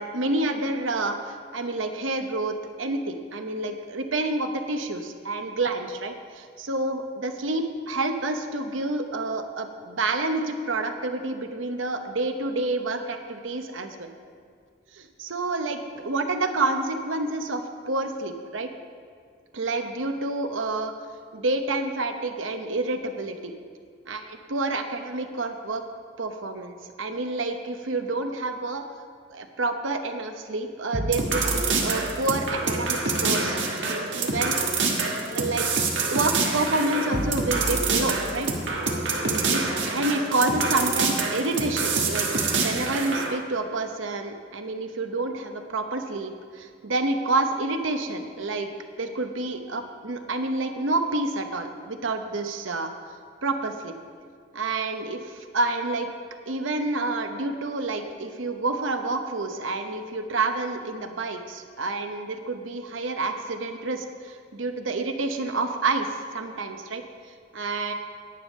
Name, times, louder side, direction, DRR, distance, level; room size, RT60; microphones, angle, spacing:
voice 1, 0.0-14.1 14.9-18.7 19.5-20.9 21.3-23.5 24.1-25.8 26.2-28.8 29.3-34.5 35.3-35.7 36.1-38.5 39.0-42.3 42.6-48.7 49.0-52.9 53.4-53.9 54.5-56.1 56.5-66.1 66.3-67.0 67.5-67.9, right 2 dB, 85° right, 6 dB, 0.9 m, -28 dB
sound 1, 30.9-43.3, right 3 dB, 70° right, 1.3 m, -26 dB
10.5 x 9.0 x 5.3 m, 2.1 s
head